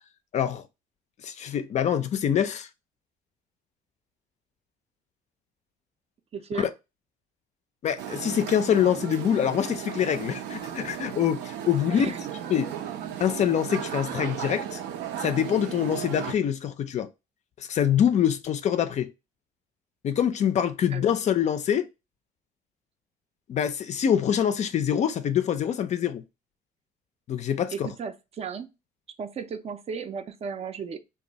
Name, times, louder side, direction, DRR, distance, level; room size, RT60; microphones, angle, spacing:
voice 1, 0.3-0.6 1.2-2.7 6.5-6.7 7.8-12.1 12.5-12.7 13.2-14.8 15.2-17.1 17.6-19.1 20.0-21.9 23.5-26.2 27.3-27.9, left 9 dB, 45° left, 0.4 m, -25 dB
voice 2, 6.3-6.7 11.9-12.3 20.9-21.0 27.7-28.7 29.2-31.0, right 6 dB, 40° right, 0.4 m, -35 dB
sound 1, 8.0-16.3, right 9 dB, 85° right, 0.5 m, -35 dB
2.6 x 2.3 x 3.9 m
cardioid pair, 110°, 17 cm